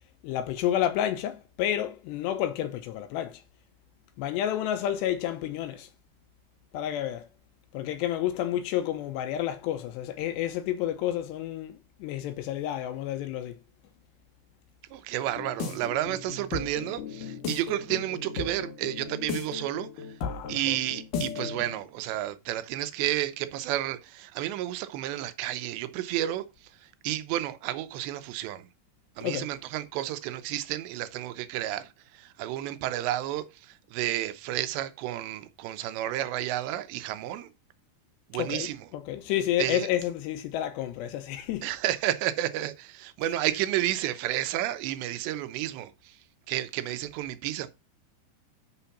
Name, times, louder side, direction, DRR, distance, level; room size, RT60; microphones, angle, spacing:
voice 1, 0.2-3.4 4.2-5.9 6.7-7.3 7.7-13.6 20.2-20.8 29.2-29.5 38.4-38.7 38.9-41.7, left 11 dB, 80° left, 2.9 m, -30 dB
voice 2, 14.9-20.1 20.5-28.7 29.2-37.5 38.3-38.9 39.6-39.9 41.6-46.2 46.5-47.7, right 14 dB, 80° right, 2.9 m, -31 dB
sound 1, 15.2-21.8, left 5 dB, 60° left, 2.5 m, -36 dB
6.9 x 6.1 x 5.7 m
omnidirectional pair, 5.1 m